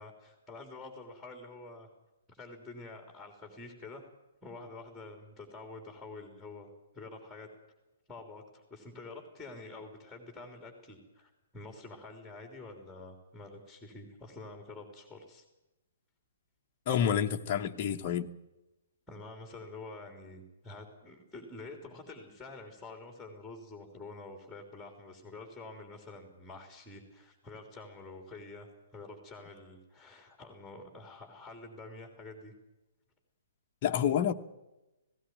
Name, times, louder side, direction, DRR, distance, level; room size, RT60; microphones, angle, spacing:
voice 1, 0.0-1.9 2.3-4.1 4.4-6.7 6.9-7.5 8.1-15.4 19.1-32.5, left 3 dB, ahead, 3.3 m, -48 dB
voice 2, 16.9-18.3 33.8-34.3, left 9 dB, 35° left, 1.1 m, -28 dB
18.5 x 16.5 x 9.3 m
figure-of-eight pair, 120°, 0 cm